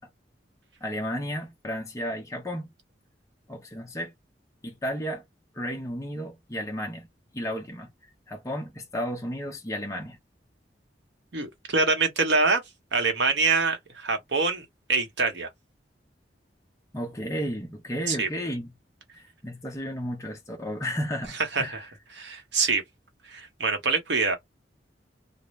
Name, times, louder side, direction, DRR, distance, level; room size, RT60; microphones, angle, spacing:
voice 1, 0.8-2.7 3.5-4.1 4.6-5.2 5.5-7.1 7.3-7.9 8.3-10.2 16.9-18.7 19.1-21.8, equal, 15° left, 0.6 m, -33 dB
voice 2, 11.3-12.6 12.9-15.5 18.1-18.3 21.5-21.9 22.1-22.8 23.3-24.4, right 4 dB, 80° right, 0.9 m, -25 dB
2.5 x 2.0 x 3.1 m
head